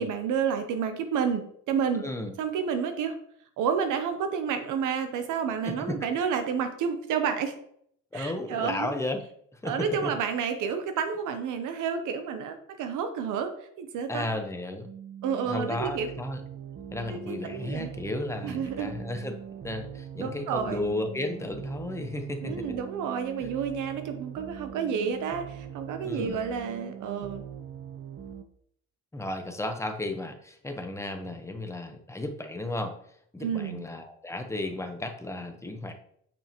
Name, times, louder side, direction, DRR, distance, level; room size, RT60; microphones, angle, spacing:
voice 1, 0.0-2.1 2.4-3.2 3.6-7.5 8.1-8.9 9.6-14.3 15.2-16.1 17.1-17.9 18.4-18.9 20.2-20.8 22.4-27.4 33.4-33.9, right 7 dB, 90° right, 8 dB, 0.8 m, -30 dB
voice 2, 1.9-2.3 5.6-6.0 8.1-9.2 9.5-10.1 14.1-14.9 15.5-16.4 16.9-19.3 19.6-22.7 26.0-26.4 29.1-33.0 33.3-35.9, left 2 dB, 10° left, 5 dB, 0.9 m, -34 dB
sound 1, 14.9-28.4, right 9 dB, 45° right, 0.7 m, -42 dB
7.1 x 5.5 x 3.0 m, 0.67 s
cardioid pair, 90°, 30 cm